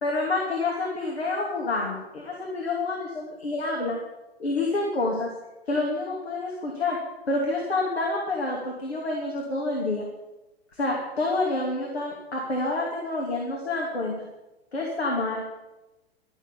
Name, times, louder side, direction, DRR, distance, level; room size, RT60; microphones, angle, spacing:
voice 1, 0.0-4.0 4.4-5.3 5.7-7.0 7.3-10.1 10.7-14.1 14.7-15.5, left 2 dB, 80° left, -2 dB, 2.9 m, -28 dB
12.5 x 7.0 x 9.9 m, 1.0 s
figure-of-eight pair, 110°, 31 cm